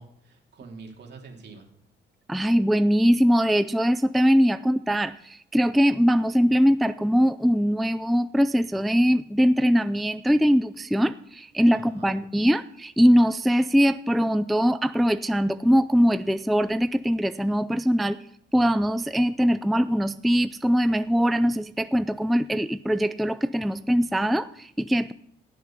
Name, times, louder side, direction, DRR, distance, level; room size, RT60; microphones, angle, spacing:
voice 1, 0.0-1.7 11.7-12.2, right 4 dB, 60° right, 2 dB, 2.8 m, -45 dB
voice 2, 2.3-18.2 18.5-25.1, equal, ahead, 13 dB, 0.4 m, -22 dB
17.5 x 6.4 x 5.7 m, 0.72 s
cardioid pair, 90°, 20 cm